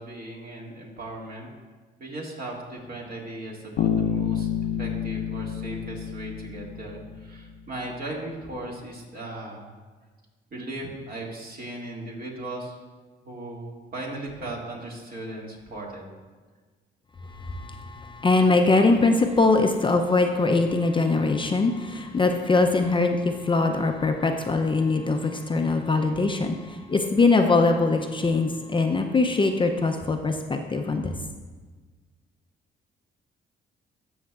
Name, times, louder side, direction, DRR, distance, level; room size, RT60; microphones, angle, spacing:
voice 1, 0.0-1.5 2.0-4.5 4.8-9.7 10.5-12.8 13.2-16.1, right 1 dB, 50° right, -2 dB, 2.1 m, -37 dB
Bass guitar, 3.8-7.5, left 8 dB, 85° left, 0.6 m, -29 dB
voice 2, 17.3-31.1, left 3 dB, 25° left, 4 dB, 0.5 m, -22 dB
13.5 x 6.3 x 2.4 m, 1.4 s
cardioid pair, 90°, 20 cm